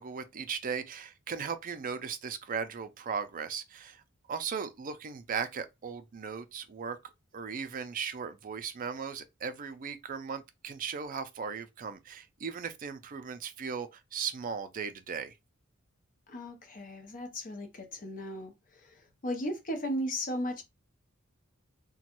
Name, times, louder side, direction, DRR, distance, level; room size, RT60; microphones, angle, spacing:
voice 1, 0.0-4.0 4.3-7.0 7.3-15.3, right 6 dB, 40° right, 0.4 m, -37 dB
voice 2, 16.3-18.5 19.2-20.6, equal, 40° left, 0.8 m, -35 dB
3.0 x 2.2 x 2.9 m
head